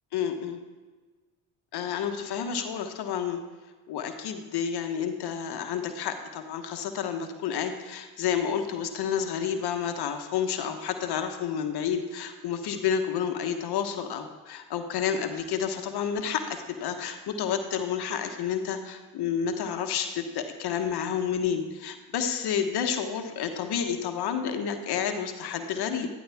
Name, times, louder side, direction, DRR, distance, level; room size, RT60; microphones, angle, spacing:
voice 1, 0.1-0.6 1.7-3.4 3.9-26.1, left 7 dB, 65° left, 6 dB, 1.3 m, -30 dB
12.0 x 11.5 x 3.5 m, 1.3 s
hypercardioid pair, 55°, 41 cm